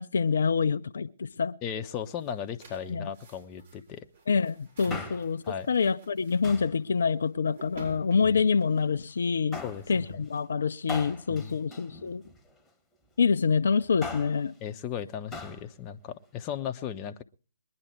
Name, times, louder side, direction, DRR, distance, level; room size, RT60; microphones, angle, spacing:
voice 1, 0.0-1.6 2.9-3.1 4.3-5.4 5.7-9.6 9.9-12.2 13.2-14.5, left 5 dB, 60° left, 0.6 m, -26 dB
voice 2, 1.6-4.1 4.9-5.1 5.5-5.7 8.2-8.3 9.6-10.2 11.3-11.6 14.6-17.2, left 8 dB, 20° left, 0.9 m, -36 dB
sound 1, 1.7-10.9, right 4 dB, 50° right, 7.8 m, -56 dB
Male speech man speaking, 4.7-5.5 6.4-6.8 7.6-8.4 9.5-9.9 10.9-12.5 13.8-14.4 15.3-15.6 15.9-16.0, left 3 dB, 5° left, 1.8 m, -40 dB
22.0 x 10.5 x 4.6 m
figure-of-eight pair, 135°, 0 cm